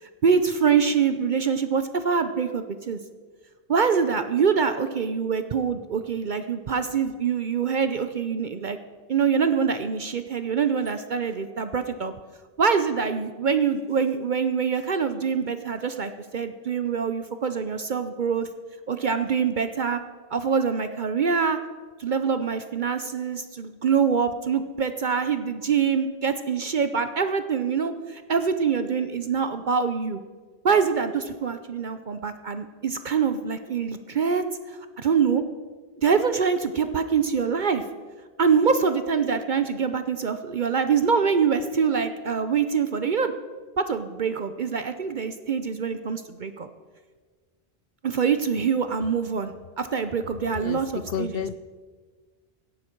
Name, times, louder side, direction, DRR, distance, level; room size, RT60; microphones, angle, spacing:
voice 1, 0.2-3.0 3.7-8.8 9.1-12.1 12.6-18.5 18.9-20.0 20.3-21.6 22.0-30.2 30.6-35.4 36.0-37.8 38.4-43.3 43.8-46.7 48.0-51.4, right 6 dB, 55° right, 9 dB, 0.7 m, -24 dB
voice 2, 51.1-51.6, left 7 dB, 70° left, 16 dB, 0.8 m, -30 dB
17.0 x 11.5 x 4.5 m, 1.5 s
omnidirectional pair, 1.1 m